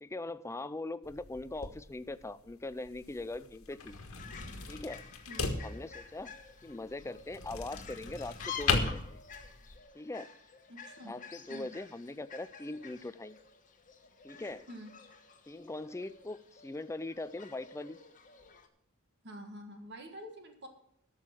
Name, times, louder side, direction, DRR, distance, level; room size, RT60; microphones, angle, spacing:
voice 1, 0.0-4.0 4.7-5.0 5.6-6.3 6.6-9.2 9.9-10.3 11.1-13.4 14.2-14.7 15.5-18.0, left 2 dB, 15° left, 15 dB, 0.4 m, -41 dB
sound 1, 1.0-9.8, left 4 dB, 75° left, 1.5 m, -38 dB
Fowl, 3.8-18.7, left 7 dB, 40° left, 1.2 m, -50 dB
voice 2, 10.7-11.2 11.5-11.7 14.7-14.9 19.2-20.7, equal, 50° right, 4 dB, 1.7 m, -47 dB
13.0 x 6.4 x 7.4 m, 0.73 s
head